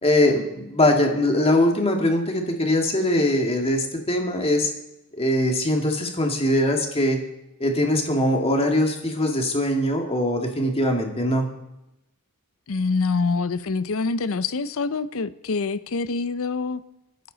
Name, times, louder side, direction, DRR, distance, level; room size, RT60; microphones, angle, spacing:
voice 1, 0.0-4.7 5.1-7.2 7.6-11.5, left 1 dB, 25° left, 2 dB, 2.0 m, -22 dB
voice 2, 12.7-16.8, left 4 dB, 65° left, 15 dB, 0.6 m, -25 dB
25.0 x 10.5 x 4.0 m, 0.91 s
head